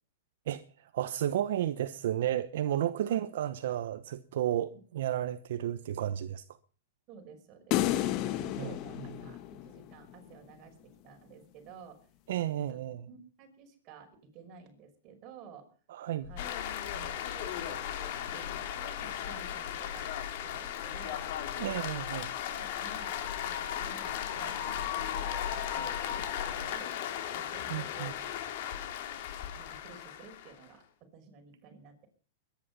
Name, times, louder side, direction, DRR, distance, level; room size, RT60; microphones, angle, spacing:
voice 1, 0.5-6.4 8.6-8.7 12.3-13.1 15.9-16.3 21.6-22.3 27.7-28.1, right 11 dB, 70° right, 1.0 m, -32 dB
voice 2, 7.1-12.1 12.4-15.7 16.2-16.5 16.8-21.3 21.6-22.0 22.5-27.0 27.3-28.4 28.7-28.8 29.5-32.1, right 6 dB, 35° right, 5.6 m, -53 dB
sound 1, 7.7-10.1, left 14 dB, 40° left, 1.2 m, -31 dB
sound 2, 16.2-26.7, left 8 dB, 75° left, 1.9 m, -45 dB
sound 3, 16.4-30.6, left 10 dB, 55° left, 3.0 m, -36 dB
21.5 x 10.5 x 5.5 m
hypercardioid pair, 135°, 0 cm